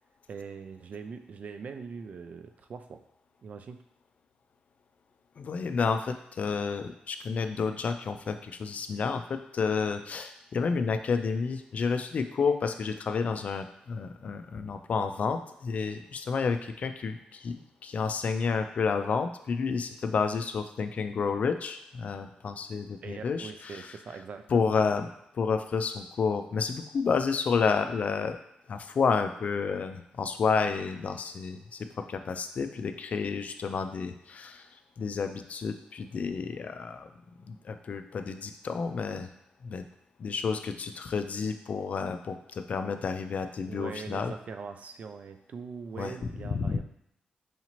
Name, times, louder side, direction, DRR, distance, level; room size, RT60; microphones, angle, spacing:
voice 1, 0.3-3.0 3.4-3.8 23.0-24.7 43.7-46.8, right 5 dB, 55° right, 8 dB, 0.3 m, -42 dB
voice 2, 5.4-23.9 24.5-25.1 25.3-28.4 28.7-37.1 37.5-39.3 39.6-39.8 40.2-44.3 46.0-46.1 46.4-46.8, left 5 dB, 55° left, 8 dB, 0.3 m, -30 dB
4.9 x 2.8 x 2.9 m, 0.79 s
wide cardioid pair, 110°, 3 cm